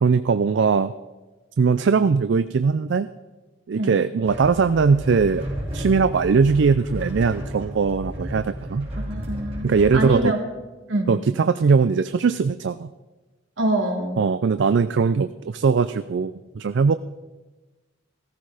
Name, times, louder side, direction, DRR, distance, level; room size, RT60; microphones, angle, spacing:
voice 1, 0.0-0.9 1.6-3.1 3.7-5.5 5.7-8.9 9.6-10.3 11.1-12.9 14.2-16.9, right 5 dB, 60° right, 12 dB, 0.4 m, -20 dB
sound 1, 4.2-10.0, equal, 30° right, 4.5 m, -32 dB
voice 2, 8.9-10.4 10.9-11.1 13.6-14.2, right 1 dB, 75° right, 1 dB, 2.7 m, -25 dB
15.5 x 14.0 x 4.9 m, 1.2 s
head